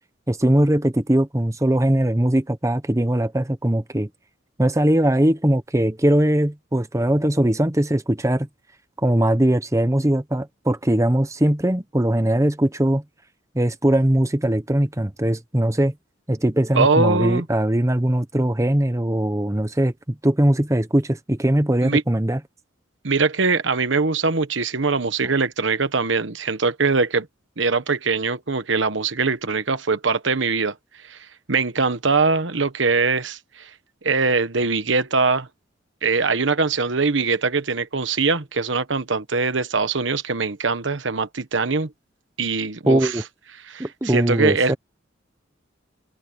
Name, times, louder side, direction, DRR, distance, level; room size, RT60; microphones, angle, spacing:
voice 1, 0.3-4.1 4.6-8.5 9.0-13.0 13.5-15.9 16.3-22.4 42.9-43.2 43.8-44.7, right 1 dB, 15° right, 1.0 m, -20 dB
voice 2, 16.7-17.4 21.8-22.0 23.0-27.3 27.6-30.7 31.0-31.2 31.5-33.7 34.0-35.5 36.0-41.9 42.4-43.2 43.7-44.8, right 4 dB, 70° right, 1.3 m, -22 dB
head